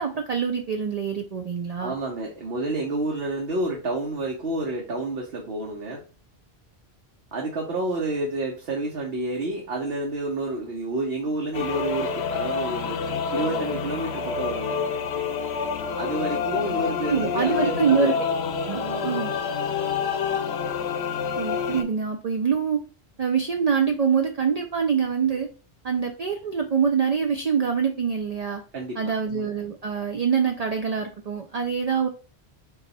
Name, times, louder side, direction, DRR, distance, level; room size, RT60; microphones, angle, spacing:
voice 1, 0.0-1.9 17.0-18.1 18.7-19.3 21.4-22.8 23.2-25.5 25.8-28.6 29.0-32.1, right 6 dB, 55° right, 4 dB, 0.4 m, -25 dB
voice 2, 1.8-6.0 7.3-13.0 13.3-14.8 15.9-18.1 18.7-19.4 28.7-29.1, right 2 dB, 70° right, 0 dB, 1.0 m, -29 dB
sound 1, 11.5-21.8, left 6 dB, 85° left, 0.9 m, -28 dB
4.0 x 2.3 x 4.0 m, 0.35 s
omnidirectional pair, 1.1 m